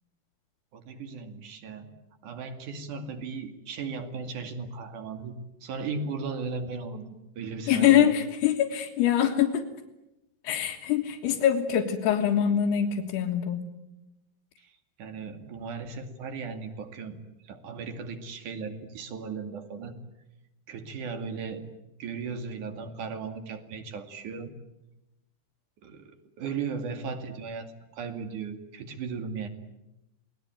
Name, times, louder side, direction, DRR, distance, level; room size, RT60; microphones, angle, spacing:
voice 1, 0.7-1.9 2.2-5.3 5.6-8.1 14.6-14.7 15.0-17.2 17.5-20.0 20.7-21.6 22.0-24.5 25.8-27.7 27.9-29.5, right 5 dB, 55° right, 7 dB, 3.7 m, -36 dB
voice 2, 7.7-9.7 10.4-13.6, left 10 dB, 90° left, -1 dB, 3.7 m, -24 dB
28.5 x 20.5 x 9.2 m, 0.93 s
omnidirectional pair, 4.5 m